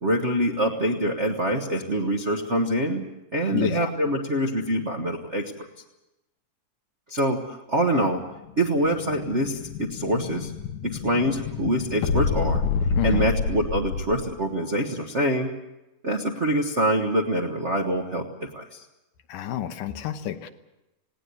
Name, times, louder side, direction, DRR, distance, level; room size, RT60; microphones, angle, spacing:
voice 1, 0.0-5.5 7.1-8.2 8.6-10.5 10.8-12.6 13.0-15.5 16.0-18.8, right 1 dB, 65° right, 1 dB, 0.6 m, -25 dB
voice 2, 3.5-3.9 12.9-13.3 19.3-20.5, left 11 dB, 90° left, 8 dB, 2.7 m, -29 dB
Explosion, 8.3-14.4, left 5 dB, 70° left, 2.3 m, -28 dB
19.0 x 18.0 x 9.4 m, 0.95 s
omnidirectional pair, 3.7 m